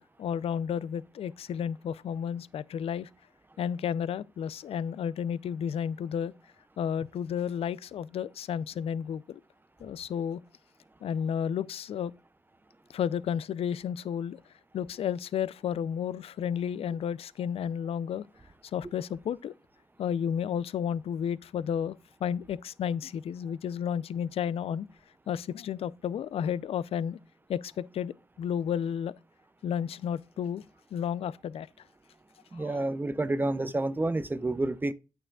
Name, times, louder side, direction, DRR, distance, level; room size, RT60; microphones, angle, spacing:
voice 1, 0.2-3.1 3.6-6.3 6.8-9.4 9.8-10.4 11.0-12.1 12.9-14.4 14.7-18.3 18.7-19.5 20.0-22.0 22.2-24.9 25.3-27.2 27.5-29.1 29.6-30.6 30.9-31.7 32.5-32.8, left 8 dB, 60° left, 0.4 m, -32 dB
voice 2, 32.5-34.9, right 2 dB, 15° right, 0.5 m, -29 dB
8.8 x 6.6 x 2.2 m
cardioid pair, 80°, 11 cm